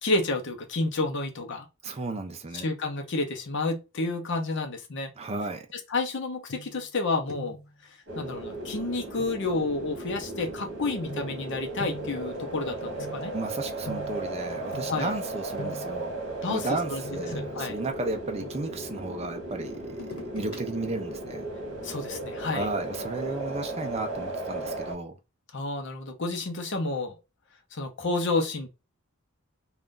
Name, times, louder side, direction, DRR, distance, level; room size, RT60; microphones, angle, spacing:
voice 1, 0.0-1.7 2.5-5.1 5.7-7.6 8.2-13.3 14.9-15.1 16.4-17.0 17.3-17.8 21.8-22.7 25.5-27.1 27.7-28.7, left 3 dB, 60° left, 0.7 m, -30 dB
voice 2, 1.8-2.7 5.2-5.6 13.3-16.1 16.5-21.5 22.5-25.2, right 2 dB, 30° right, 0.4 m, -34 dB
sound 1, 6.5-7.0 7.3-7.7 9.2-9.3 11.1-15.2 15.6-16.1 17.0-18.9 19.9-20.6 21.0-21.1, left 1 dB, 80° left, 1.1 m, -43 dB
sound 2, 8.1-24.9, right 1 dB, 55° right, 1.2 m, -36 dB
2.5 x 2.4 x 3.6 m
head